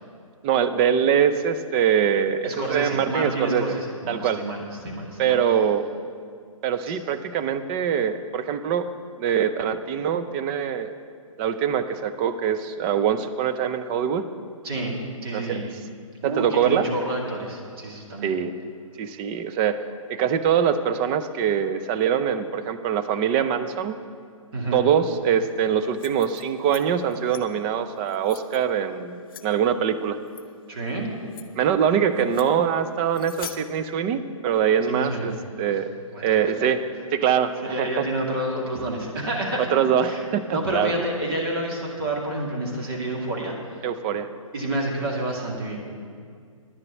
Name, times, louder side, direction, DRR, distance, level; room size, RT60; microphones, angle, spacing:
voice 1, 0.4-3.7 4.1-4.4 5.2-5.9 6.6-8.9 9.2-10.9 11.4-14.2 15.3-15.7 16.2-16.9 18.2-18.5 19.0-19.8 20.1-23.9 24.7-30.2 31.6-35.9 36.2-36.8 37.1-38.0 39.7-40.9 43.8-44.3, right 8 dB, 15° right, 11 dB, 0.4 m, -23 dB
voice 2, 2.4-5.4 6.9-7.0 14.6-15.6 16.2-18.3 24.5-24.9 30.7-31.1 34.9-35.3 36.1-36.4 37.6-39.7 40.0-40.2 40.5-43.7 44.5-45.8, right 1 dB, 45° right, -1 dB, 2.4 m, -29 dB
sound 1, 25.8-26.8 27.1-27.4 28.0-28.6 29.3-29.4 30.3-30.4 30.9-31.0 31.3-31.5 32.1-32.5 33.1-33.6, left 9 dB, 40° left, 0.7 m, -42 dB
10.5 x 6.7 x 8.5 m, 2.2 s
figure-of-eight pair, 140°, 18 cm